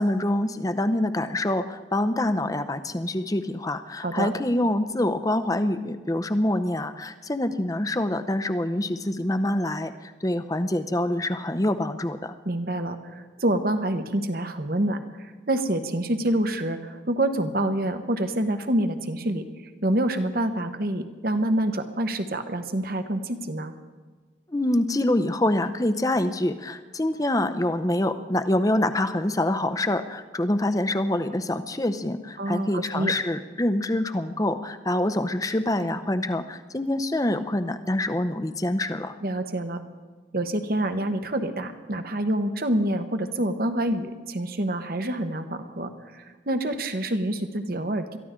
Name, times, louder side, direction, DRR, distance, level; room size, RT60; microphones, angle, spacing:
voice 1, 0.0-12.3 24.5-39.2, left 1 dB, 20° left, 10 dB, 0.6 m, -25 dB
voice 2, 12.4-23.7 32.4-33.1 39.2-39.8 40.3-48.2, right 1 dB, 50° right, 8 dB, 1.1 m, -27 dB
22.5 x 14.0 x 3.7 m, 1.4 s
head